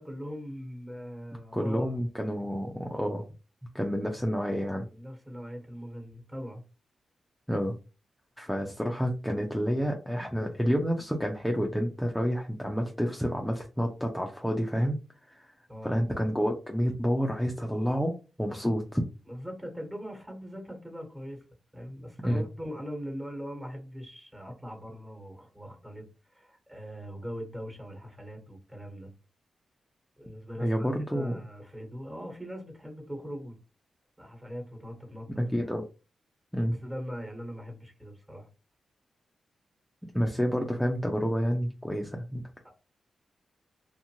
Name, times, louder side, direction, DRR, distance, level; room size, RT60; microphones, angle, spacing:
voice 1, 0.0-1.9 4.9-6.6 15.7-16.0 19.3-21.4 21.7-29.1 30.2-33.6 34.2-35.3 36.8-38.5 42.6-42.7, equal, 15° right, 2 dB, 1.3 m, -41 dB
voice 2, 1.5-3.2 3.7-4.9 7.5-7.8 8.4-15.5 15.8-19.0 22.2-22.4 30.6-31.4 35.3-35.8 36.5-36.8 40.1-42.5, equal, 5° left, 2 dB, 0.5 m, -29 dB
2.6 x 2.4 x 2.9 m, 0.32 s
cardioid pair, 55°, 0 cm